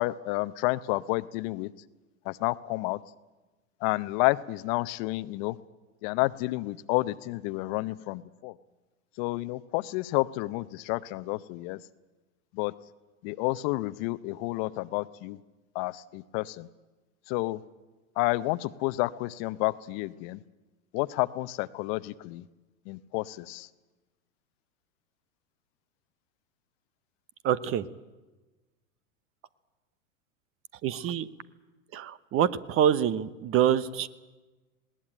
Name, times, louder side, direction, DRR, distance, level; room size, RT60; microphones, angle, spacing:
voice 1, 0.0-1.7 2.2-3.0 3.8-5.6 6.0-8.6 9.2-11.8 12.5-12.7 13.2-15.4 15.7-16.7 17.3-17.6 18.2-20.4 20.9-22.5 22.9-23.7, left 21 dB, 45° left, 16 dB, 0.8 m, -30 dB
voice 2, 27.4-27.9 30.8-31.3 31.9-34.1, right 9 dB, 35° right, 17 dB, 1.0 m, -26 dB
20.0 x 18.5 x 8.9 m, 1.2 s
hypercardioid pair, 105°, 40 cm